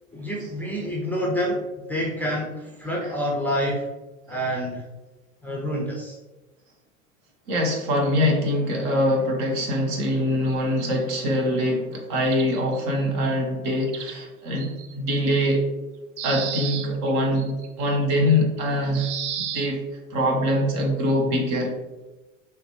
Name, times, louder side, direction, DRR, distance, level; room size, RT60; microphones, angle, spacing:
voice 1, 0.1-1.6 1.9-3.9 4.3-4.9 5.4-6.2, equal, 5° left, -2 dB, 0.6 m, -27 dB
voice 2, 7.5-15.7 16.2-19.1 19.4-19.8 20.1-21.8, left 1 dB, 45° right, 1 dB, 1.1 m, -23 dB
sound 1, 7.7-8.1 9.2-9.3 9.6-9.7 10.5-11.1 12.3-12.8 13.9-14.1 14.6-14.9 15.5-15.6 16.2-18.6 18.9-19.7, right 9 dB, 60° right, 0.6 m, -34 dB
4.9 x 3.3 x 3.1 m, 1.1 s
figure-of-eight pair, 80°, 40 cm